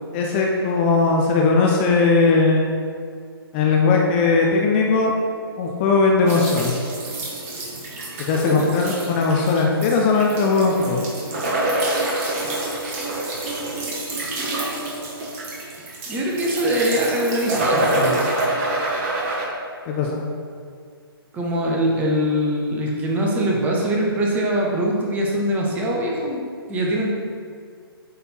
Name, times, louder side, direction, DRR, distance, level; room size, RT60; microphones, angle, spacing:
voice 1, 0.1-2.7 3.5-5.1 5.6-6.7 8.2-11.1 19.9-20.2, left 4 dB, 25° left, 0 dB, 0.6 m, -19 dB
sound 1, 6.3-19.5, right 2 dB, 30° right, 1.3 m, -27 dB
voice 2, 16.1-18.3 21.3-26.4 26.7-27.1, equal, 10° right, -2 dB, 0.8 m, -22 dB
8.4 x 3.4 x 4.4 m, 2.1 s
figure-of-eight pair, 140°, 13 cm